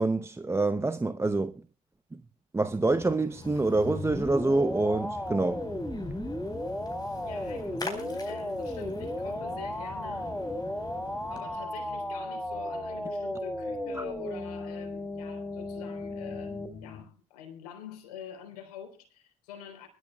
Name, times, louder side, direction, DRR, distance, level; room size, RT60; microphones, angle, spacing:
voice 1, 0.0-1.6 2.1-2.2 2.5-5.7 14.0-14.1, right 2 dB, 15° right, 0.7 m, -26 dB
Splash splatter, 2.9-11.6, left 2 dB, 20° left, 4.4 m, -44 dB
sound 1, 3.7-17.0, left 6 dB, 45° left, 2.6 m, -50 dB
sound 2, 3.8-16.7, left 1 dB, 5° left, 1.7 m, -35 dB
voice 2, 7.2-10.4 11.3-19.9, left 8 dB, 85° left, 3.8 m, -46 dB
24.0 x 12.5 x 2.3 m
hypercardioid pair, 65°, 19 cm